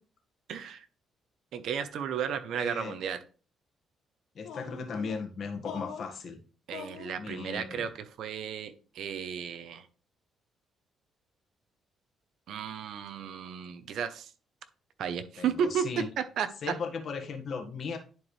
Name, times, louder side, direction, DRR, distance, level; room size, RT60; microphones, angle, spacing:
voice 1, 0.5-0.9 1.5-3.2 6.7-7.9 8.2-9.9 12.5-14.3 15.0-15.8 16.4-16.5, right 8 dB, 75° right, 10 dB, 0.8 m, -33 dB
voice 2, 2.5-3.0 4.3-6.4 7.2-7.9 15.4-16.1 16.6-18.0, left 5 dB, 55° left, 4 dB, 1.6 m, -37 dB
sound 1, 4.4-5.2 5.6-6.2 6.7-7.2, left 5 dB, 80° left, 1.8 m, -42 dB
10.5 x 4.6 x 3.3 m, 0.38 s
cardioid pair, 90°, 0 cm